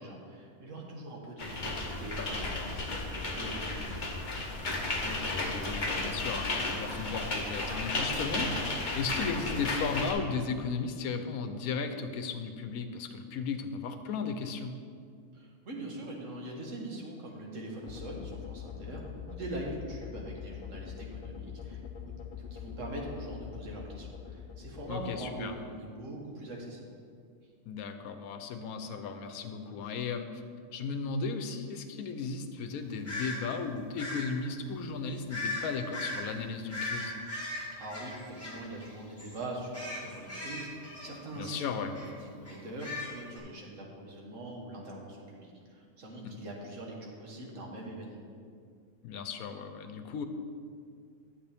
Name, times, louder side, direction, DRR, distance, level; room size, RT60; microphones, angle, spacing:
voice 1, 0.0-3.9 15.3-22.2 22.5-26.8 37.8-48.2, right 1 dB, 60° right, -1 dB, 1.7 m, -42 dB
sound 1, 1.4-10.1, left 2 dB, 35° left, 1.0 m, -34 dB
voice 2, 5.0-8.5 8.8-14.7 24.9-25.5 27.7-30.4 30.7-37.1 41.4-41.9 46.2-46.3 49.0-50.3, left 5 dB, 80° left, 8 dB, 1.1 m, -35 dB
sound 2, 17.8-26.0, left 8 dB, 65° left, 0.5 m, -44 dB
sound 3, 33.0-33.4 34.0-34.3 35.3-35.6 35.9-36.2 36.7-38.9 39.2-39.4 39.7-41.6 41.9-42.1 42.4-43.4, left 2 dB, 10° left, 2.0 m, -38 dB
11.5 x 7.6 x 3.5 m, 2.2 s
omnidirectional pair, 1.5 m